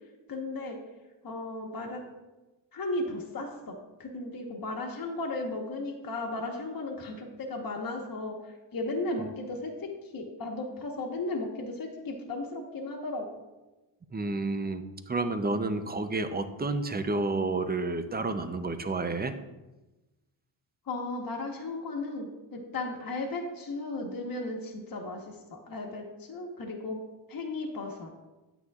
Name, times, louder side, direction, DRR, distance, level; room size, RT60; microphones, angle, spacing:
voice 1, 0.3-0.8 1.2-2.0 2.7-3.7 4.0-13.2 20.9-27.0 27.3-28.1, left 2 dB, 45° left, 1 dB, 1.3 m, -35 dB
voice 2, 14.1-19.4, right 3 dB, 20° right, 9 dB, 0.6 m, -30 dB
9.5 x 9.1 x 2.4 m, 1.1 s
cardioid pair, 110°, 46 cm